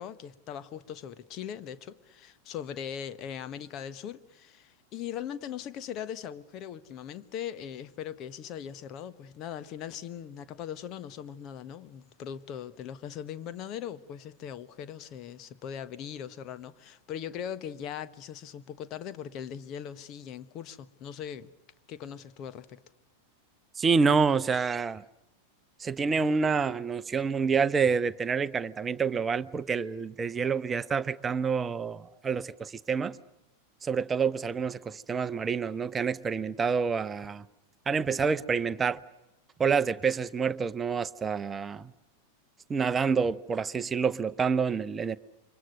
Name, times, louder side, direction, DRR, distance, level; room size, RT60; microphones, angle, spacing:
voice 1, 0.0-21.5 21.9-22.8, left 9 dB, 35° left, 1.3 m, -40 dB
voice 2, 23.8-25.0 25.8-33.2 33.8-37.5 37.9-39.0 39.6-41.9 42.7-45.2, right 5 dB, 20° right, 0.9 m, -28 dB
29.5 x 25.5 x 6.6 m
figure-of-eight pair, 90°, 0 cm